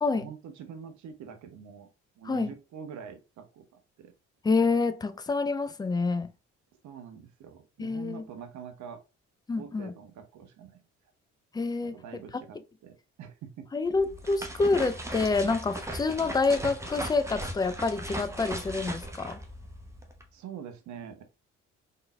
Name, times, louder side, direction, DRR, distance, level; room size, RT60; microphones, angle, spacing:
voice 1, 0.1-1.9 2.2-4.1 6.8-9.0 9.5-10.8 11.9-13.7 20.3-21.2, right 7 dB, 50° right, 0.8 m, -45 dB
voice 2, 4.4-6.3 7.8-8.2 9.5-9.9 11.5-11.9 13.7-19.4, left 3 dB, 10° left, 0.4 m, -27 dB
sound 1, 13.9-20.2, right 1 dB, 10° right, 0.9 m, -38 dB
3.7 x 3.7 x 2.2 m
figure-of-eight pair, 45°, 37 cm